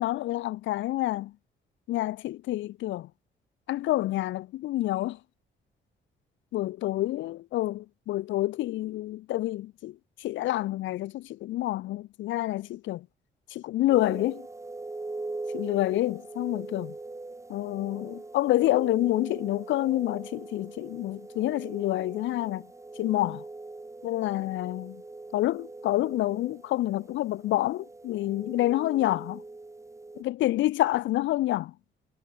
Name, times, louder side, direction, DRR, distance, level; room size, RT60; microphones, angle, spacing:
voice 1, 0.0-1.3 1.9-3.1 3.7-5.2 6.5-13.1 13.5-14.4 15.5-16.9 17.5-22.7 23.0-23.4 24.0-25.0 25.3-29.4 30.2-31.7, left 15 dB, 70° left, 0.4 m, -28 dB
sound 1, 13.9-30.2, right 2 dB, 15° right, 1.1 m, -41 dB
cardioid pair, 90°, 20 cm